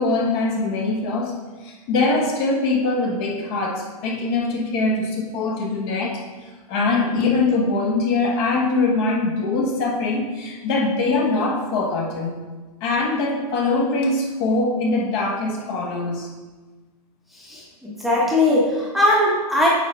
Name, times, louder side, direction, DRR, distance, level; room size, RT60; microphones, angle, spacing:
voice 1, 0.0-1.4 1.6-6.2 6.7-12.3 12.8-16.3, left 3 dB, 35° left, 0 dB, 1.2 m, -22 dB
voice 2, 17.5-19.7, left 1 dB, ahead, -6 dB, 1.1 m, -19 dB
8.9 x 4.8 x 3.3 m, 1.3 s
hypercardioid pair, 145°, 20 cm